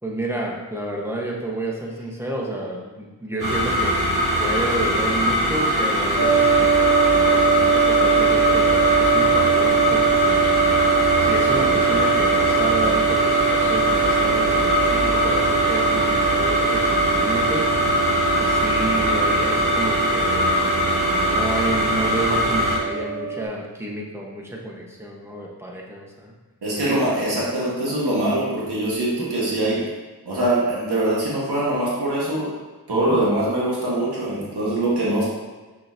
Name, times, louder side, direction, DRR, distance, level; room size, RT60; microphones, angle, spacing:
voice 1, 0.0-4.1 4.4-10.4 11.2-26.3 26.9-27.0 29.2-29.3 32.9-33.2, right 1 dB, 5° right, -3 dB, 1.5 m, -30 dB
sound 1, 3.4-22.8, equal, 55° right, 2.0 m, -21 dB
sound 2, 6.2-23.4, right 6 dB, 85° left, 1.2 m, -22 dB
voice 2, 14.8-15.1 26.6-29.9 30.3-32.5 32.9-35.2, right 1 dB, 90° right, -7 dB, 1.8 m, -23 dB
6.5 x 5.6 x 2.9 m, 1.2 s
cardioid pair, 55°, 38 cm